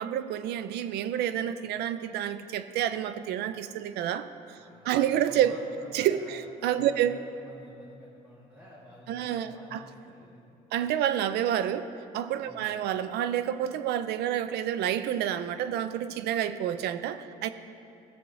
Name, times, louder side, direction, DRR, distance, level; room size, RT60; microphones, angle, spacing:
voice 1, 0.0-4.6 4.8-5.5 5.9-7.2 9.1-9.8 10.7-17.5, right 10 dB, 75° right, 12 dB, 0.5 m, -29 dB
voice 2, 4.5-6.4 6.7-10.4 12.4-12.7, left 1 dB, 10° right, -7 dB, 1.7 m, -51 dB
15.5 x 7.0 x 2.7 m, 2.6 s
cardioid pair, 110°, 17 cm